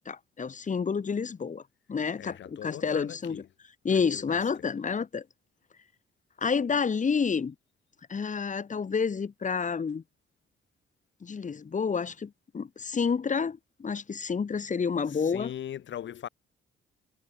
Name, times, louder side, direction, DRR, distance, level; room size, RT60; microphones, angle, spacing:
voice 1, 0.0-1.6 1.9-3.4 3.8-5.2 6.4-7.5 8.1-10.0 11.2-15.5, left 5 dB, 40° left, 5.9 m, -29 dB
voice 2, 2.2-3.4 3.9-4.7 15.1-16.3, left 10 dB, 70° left, 5.1 m, -40 dB
cardioid pair, 90°, 20 cm